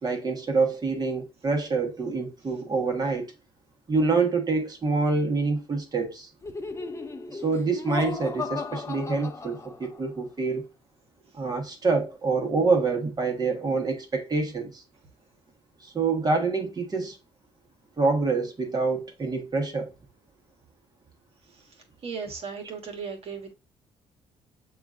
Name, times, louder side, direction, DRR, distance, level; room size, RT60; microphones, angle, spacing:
voice 1, 0.0-3.3 3.9-6.3 7.3-10.6 11.3-14.8 15.8-17.2 18.0-19.9, right 4 dB, 35° right, 1.2 m, -26 dB
Laughter, 6.4-10.1, left 4 dB, 25° left, 0.7 m, -35 dB
voice 2, 22.0-23.5, right 5 dB, 55° right, 1.3 m, -36 dB
6.8 x 2.5 x 2.4 m
supercardioid pair, 60°, 12 cm